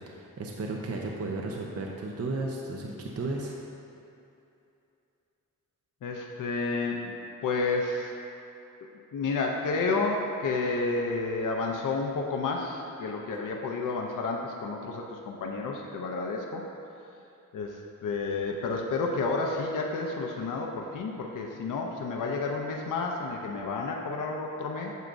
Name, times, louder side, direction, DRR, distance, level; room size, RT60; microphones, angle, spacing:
voice 1, 0.1-3.6, right 2 dB, 45° right, 0 dB, 0.7 m, -34 dB
voice 2, 6.0-7.2 7.4-8.1 9.1-16.7 17.5-24.9, left 3 dB, 65° left, 0 dB, 0.7 m, -30 dB
9.2 x 6.7 x 2.6 m, 2.7 s
cardioid pair, 110°, 34 cm